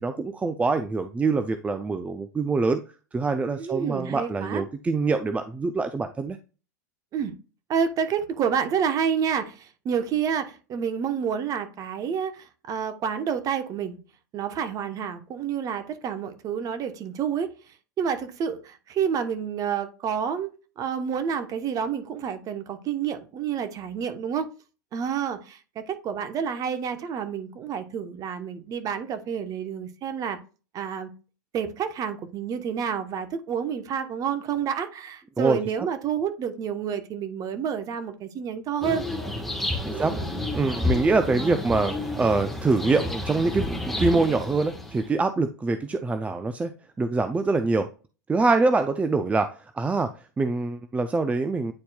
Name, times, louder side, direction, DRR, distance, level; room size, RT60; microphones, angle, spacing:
voice 1, 0.0-2.8 3.1-6.4 35.4-35.6 39.9-47.9 48.3-51.7, right 3 dB, 15° right, 0.5 m, -25 dB
voice 2, 3.5-4.6 7.1-7.3 7.7-14.0 14.3-20.5 20.8-24.5 24.9-30.4 30.7-31.1 31.5-39.0 39.9-40.3, right 7 dB, 40° right, 1.1 m, -29 dB
sound 1, 38.8-45.1, left 2 dB, ahead, 1.4 m, -30 dB
9.5 x 4.2 x 2.3 m
hypercardioid pair, 105°, 10 cm